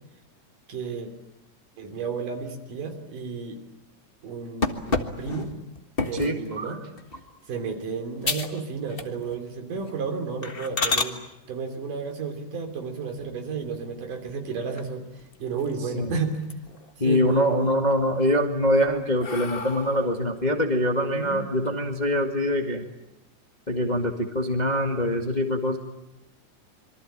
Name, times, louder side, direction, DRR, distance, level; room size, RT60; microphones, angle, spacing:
voice 1, 0.7-1.1 1.8-3.6 4.2-5.5 6.0-6.8 7.5-11.2 11.5-15.1 15.4-16.4 17.0-17.8 20.9-21.5, right 5 dB, 75° right, 5 dB, 4.7 m, -32 dB
sound 1, 4.6-6.4 7.0-7.3 7.7-7.8 8.2-8.6 8.9-9.4 9.8-9.9 10.4-11.1 13.1-13.8 14.3-14.4 14.8-14.9 15.2-16.0 16.3-16.9 17.3-17.9 18.5-20.2, left 3 dB, 50° left, 0.6 m, -30 dB
voice 2, 6.1-6.7 15.9-16.1 17.0-22.8 23.7-25.8, equal, 20° left, 3 dB, 1.3 m, -24 dB
26.5 x 23.5 x 8.9 m, 0.92 s
omnidirectional pair, 3.7 m